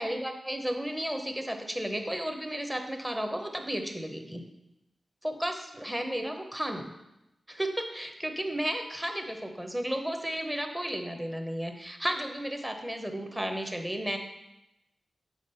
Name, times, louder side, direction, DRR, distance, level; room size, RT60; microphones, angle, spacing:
voice 1, 0.0-4.4 5.2-6.9 7.5-14.2, equal, 10° right, 4 dB, 0.7 m, -33 dB
7.0 x 3.7 x 5.5 m, 0.91 s
wide cardioid pair, 105°, 0 cm